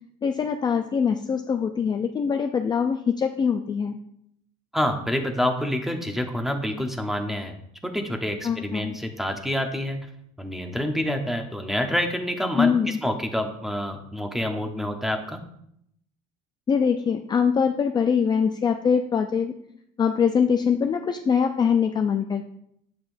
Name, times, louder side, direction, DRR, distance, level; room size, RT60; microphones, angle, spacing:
voice 1, 0.2-4.0 8.4-9.0 12.6-13.0 16.7-19.5 20.0-22.4, left 6 dB, 25° left, 5 dB, 0.4 m, -23 dB
voice 2, 4.7-7.5 7.8-10.0 10.4-15.4, left 1 dB, ahead, 4 dB, 0.9 m, -27 dB
7.9 x 6.5 x 2.6 m, 0.72 s
cardioid pair, 120°, 18 cm